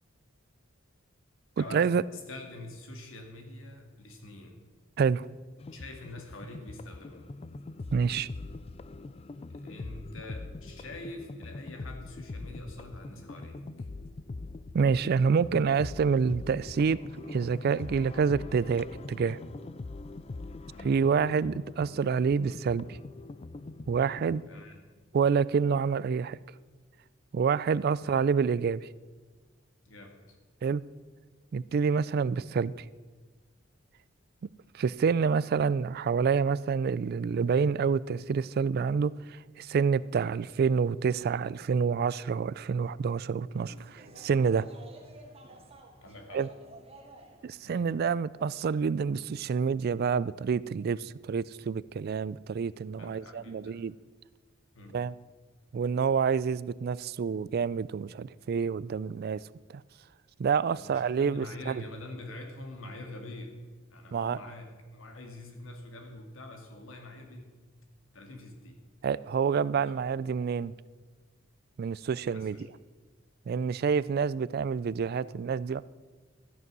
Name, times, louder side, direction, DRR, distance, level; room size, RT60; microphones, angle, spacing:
voice 1, 1.6-2.0 5.0-5.3 7.9-8.3 14.7-19.4 20.8-23.0 23.9-24.4 25.1-26.4 27.3-28.9 30.6-30.8 31.5-32.7 34.7-44.7 46.3-46.5 47.4-53.9 54.9-55.1 55.7-59.4 59.7-59.8 60.4-61.8 64.1-64.4 69.0-70.7 71.8-72.6 73.5-75.8, right 6 dB, 50° right, 19 dB, 0.3 m, -28 dB
voice 2, 2.1-4.6 5.7-7.3 9.5-13.9 20.7-21.1 24.5-24.8 28.0-28.1 29.9-30.4 46.0-46.5 47.6-47.8 53.0-53.8 54.7-55.0 60.7-63.6 63.9-67.5 68.1-68.8 72.2-72.6 73.5-73.8, left 2 dB, 80° left, 4 dB, 2.1 m, -45 dB
sound 1, 5.6-24.4, left 3 dB, 30° left, 0.4 m, -43 dB
sound 2, 43.6-47.7, right 1 dB, 30° right, 1.8 m, -52 dB
13.0 x 9.5 x 6.1 m, 1.4 s
head